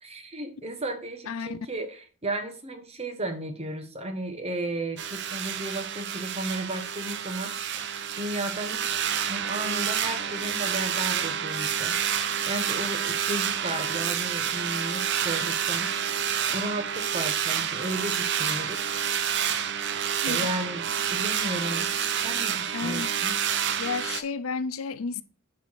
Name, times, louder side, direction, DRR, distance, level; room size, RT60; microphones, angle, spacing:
voice 1, 0.0-7.8 8.1-8.8 9.3-11.9 12.5-15.9 16.5-18.9 20.2-21.9 22.2-23.4, right 1 dB, 30° right, 1.2 m, -34 dB
voice 2, 1.3-1.6 20.2-20.4 22.7-23.2 23.8-25.2, left 5 dB, 75° left, 0.5 m, -32 dB
sound 1, 5.0-24.2, right 8 dB, 55° right, 0.7 m, -29 dB
9.1 x 4.9 x 4.1 m
head